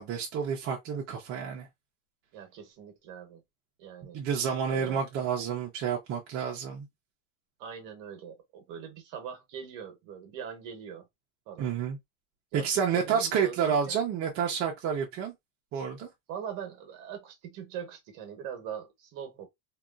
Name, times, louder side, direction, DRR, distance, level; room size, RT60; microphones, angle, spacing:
voice 1, 0.0-1.7 4.1-6.9 11.6-12.0 12.5-15.3 15.7-16.1, right 7 dB, 35° right, 0.6 m, -29 dB
voice 2, 2.3-3.4 3.8-4.2 4.7-5.0 7.6-11.1 11.5-11.7 12.5-14.0 16.3-19.5, right 8 dB, 50° right, 1.1 m, -42 dB
2.8 x 2.3 x 2.4 m
supercardioid pair, 135°, 40 cm